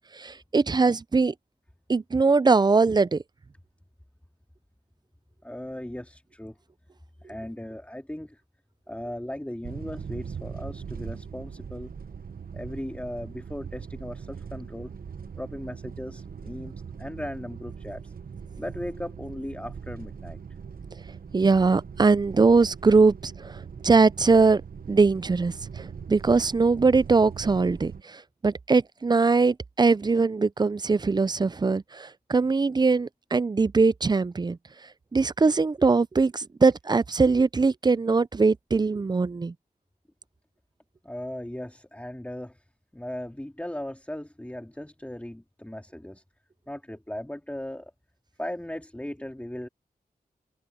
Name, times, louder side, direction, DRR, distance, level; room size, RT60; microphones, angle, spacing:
voice 1, 0.0-1.3 1.9-3.2 21.3-24.6 24.9-34.6 35.1-39.5, right 4 dB, 25° right, 0.4 m, -22 dB
voice 2, 5.4-6.6 7.2-8.4 8.9-11.9 12.5-14.9 15.4-18.1 18.6-20.4 41.0-42.6 42.9-46.2 46.7-47.9 48.4-49.7, left 1 dB, 10° left, 2.5 m, -37 dB
sound 1, 9.6-28.0, right 6 dB, 65° right, 1.0 m, -40 dB
wide cardioid pair, 70°, 16 cm